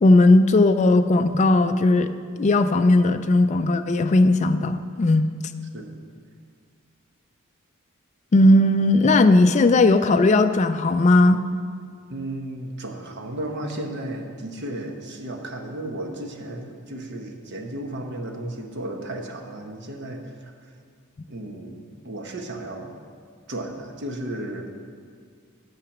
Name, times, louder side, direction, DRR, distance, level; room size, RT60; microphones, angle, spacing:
voice 1, 0.0-2.1 2.4-5.3 8.3-11.4, left 2 dB, 35° left, 8 dB, 0.3 m, -17 dB
voice 2, 12.1-20.7 21.3-22.9 23.5-24.7, right 1 dB, 55° right, 3 dB, 1.0 m, -34 dB
8.8 x 5.8 x 7.2 m, 2.1 s
head